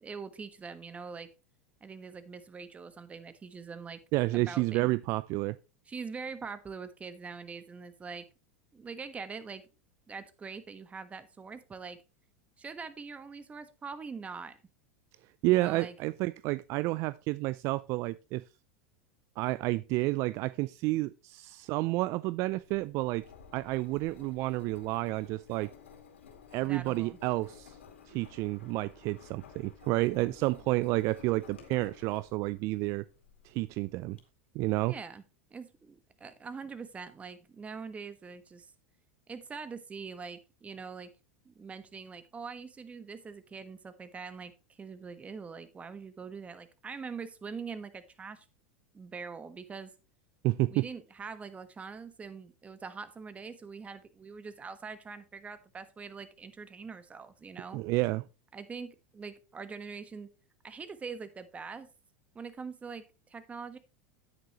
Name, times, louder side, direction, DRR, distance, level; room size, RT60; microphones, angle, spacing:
voice 1, 0.0-1.3 1.8-4.0 4.3-4.9 5.9-8.2 8.7-9.7 10.1-12.0 12.6-14.6 15.5-15.9 26.6-27.2 34.9-35.2 35.5-38.7 39.3-41.1 41.4-48.4 48.9-49.9 50.7-57.8 58.5-60.3 60.6-61.9 62.3-63.8, right 5 dB, 20° right, 1.3 m, -43 dB
voice 2, 4.1-5.6 15.4-18.4 19.4-23.2 23.5-25.7 26.5-27.8 28.1-33.1 33.4-34.2 34.5-34.9 50.4-50.9 57.7-58.2, right 20 dB, 50° right, 0.4 m, -30 dB
Engine, 22.5-34.2, left 6 dB, 85° left, 2.4 m, -54 dB
9.7 x 9.1 x 3.0 m
hypercardioid pair, 95°, 6 cm